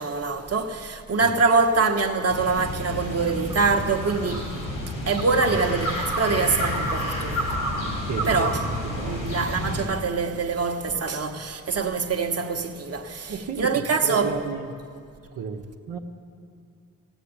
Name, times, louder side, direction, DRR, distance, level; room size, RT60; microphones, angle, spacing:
voice 1, 0.0-4.6 5.1-7.4 8.2-8.6 9.0-14.3, right 4 dB, 45° right, 1.1 m, -24 dB
sound 1, 2.3-9.9, equal, 80° left, 4.8 m, -29 dB
voice 2, 8.1-8.6 8.9-9.3 13.3-14.7 15.3-16.0, right 5 dB, 80° right, 1.0 m, -32 dB
15.0 x 9.1 x 8.7 m
supercardioid pair, 40°, 33 cm